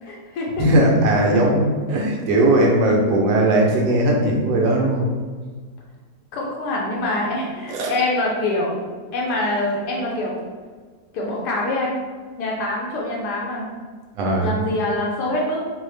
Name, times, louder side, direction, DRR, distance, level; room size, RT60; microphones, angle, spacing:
voice 1, 0.0-0.6 6.3-8.8 9.1-10.5 11.1-12.0 12.4-13.7 14.4-15.6, left 2 dB, 75° left, -2 dB, 1.1 m, -25 dB
voice 2, 0.6-5.1 7.7-7.9 14.1-14.5, right 1 dB, 85° right, -1 dB, 1.3 m, -18 dB
3.9 x 2.0 x 3.2 m, 1.5 s
omnidirectional pair, 2.0 m